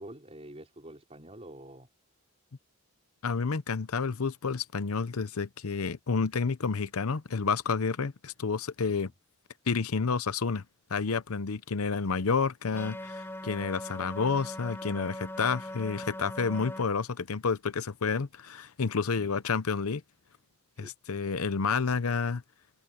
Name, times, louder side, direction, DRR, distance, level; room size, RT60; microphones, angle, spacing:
voice 1, 0.0-1.9 8.9-9.1 19.2-19.3 20.7-20.9, right 1 dB, 30° right, 4.8 m, -47 dB
voice 2, 3.2-9.1 9.7-10.6 10.9-20.0 20.8-22.4, left 5 dB, 90° left, 0.8 m, -30 dB
sound 1, 12.7-16.8, left 1 dB, 10° left, 3.9 m, -40 dB
head